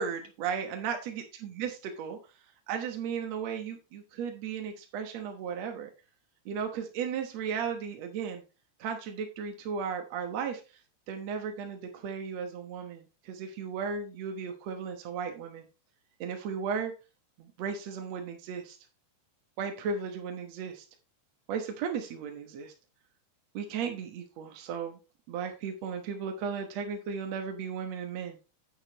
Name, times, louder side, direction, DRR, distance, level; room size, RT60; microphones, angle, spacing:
voice 1, 0.0-2.2 2.7-5.9 6.4-8.4 8.8-10.8 11.1-15.6 16.2-16.9 17.4-18.8 19.6-20.8 21.5-22.7 23.5-25.0 25.3-28.4, right 6 dB, 65° right, 4 dB, 1.7 m, -35 dB
9.6 x 9.1 x 3.0 m, 0.30 s
omnidirectional pair, 4.8 m